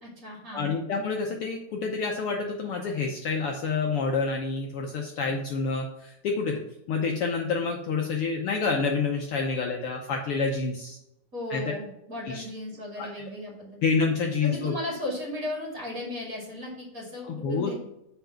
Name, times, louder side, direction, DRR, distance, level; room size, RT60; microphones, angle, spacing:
voice 1, 0.0-0.7 11.3-13.8 14.4-17.7, left 1 dB, 30° right, -4 dB, 2.7 m, -36 dB
voice 2, 0.5-6.6 6.9-11.0 11.5-11.6 12.3-12.4 13.0-13.1 13.8-14.8 17.3-17.7, left 4 dB, 90° left, 1 dB, 1.2 m, -28 dB
8.0 x 5.2 x 5.7 m, 0.81 s
omnidirectional pair, 3.6 m